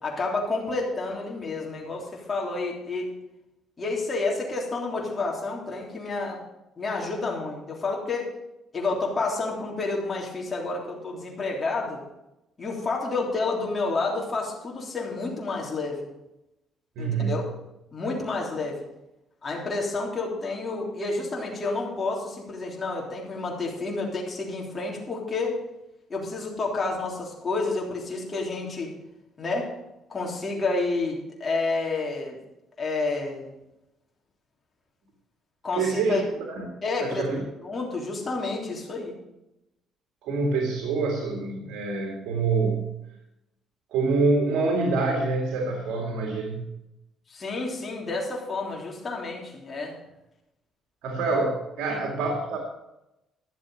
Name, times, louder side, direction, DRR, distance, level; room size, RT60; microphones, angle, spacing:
voice 1, 0.0-3.1 3.8-6.4 6.8-8.3 8.7-12.0 12.6-16.1 17.0-17.4 17.9-18.8 19.4-25.6 26.1-28.9 29.4-29.7 30.1-32.4 32.8-33.5 35.6-36.2 36.8-37.2 37.6-39.1 47.3-49.9 51.9-52.0, left 3 dB, 30° left, -2 dB, 3.4 m, -29 dB
voice 2, 17.0-17.4 35.7-36.2 36.5-36.7 37.0-37.4 40.2-42.9 43.9-46.6 51.0-52.6, right 3 dB, 80° right, 1 dB, 2.2 m, -26 dB
12.5 x 7.3 x 6.4 m, 0.91 s
cardioid pair, 90°, 0 cm